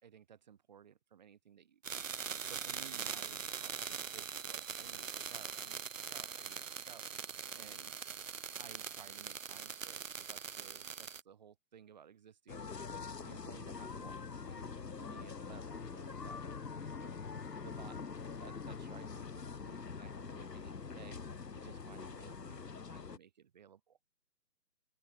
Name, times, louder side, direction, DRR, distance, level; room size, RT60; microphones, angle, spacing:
voice 1, 0.0-2.1 2.5-7.0 7.5-7.9 8.6-12.7 13.2-17.1 17.6-18.1 18.4-21.2 21.5-24.0, right 8 dB, 25° right, 1.4 m, -58 dB
sound 1, 1.8-11.2, right 7 dB, 50° right, 1.2 m, -42 dB
sound 2, 12.5-23.2, left 5 dB, 85° left, 1.6 m, -45 dB
Bowed string instrument, 15.4-21.0, left 6 dB, 65° left, 1.7 m, -54 dB
open air
figure-of-eight pair, 155°, 48 cm